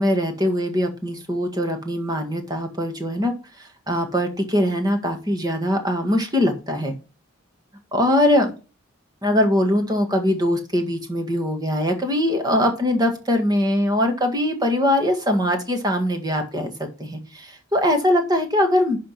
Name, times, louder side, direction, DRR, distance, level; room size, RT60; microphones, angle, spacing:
voice 1, 0.0-3.3 3.9-6.9 7.9-8.5 9.2-19.0, left 1 dB, 20° right, 4 dB, 1.8 m, -22 dB
11.0 x 3.7 x 5.8 m, 0.33 s
head